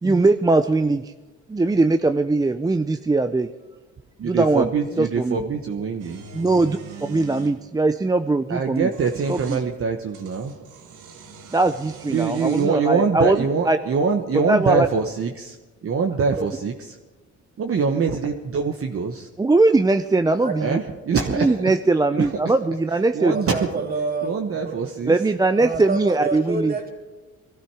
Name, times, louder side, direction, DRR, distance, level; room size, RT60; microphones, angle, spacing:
voice 1, 0.0-1.1 1.5-3.5 4.2-4.7 5.0-5.4 6.3-6.8 7.1-8.9 9.3-9.6 11.5-13.8 14.5-14.9 16.4-16.5 19.4-20.8 21.4-23.3 25.1-26.7, right 2 dB, 15° right, 8 dB, 0.5 m, -20 dB
voice 2, 4.2-6.2 8.5-10.5 12.1-15.6 15.8-17.0 17.6-19.3 20.6-21.7 22.1-22.5 23.1-23.7 24.2-25.2, right 5 dB, 50° right, 3 dB, 1.1 m, -24 dB
sound 1, 6.0-7.6 8.7-9.7 10.1-12.8, right 4 dB, 85° right, 1.7 m, -42 dB
voice 3, 23.3-24.8 25.5-26.9, right 3 dB, 30° right, 1 dB, 3.2 m, -28 dB
21.0 x 13.0 x 4.8 m, 1.2 s
cardioid pair, 90°, 30 cm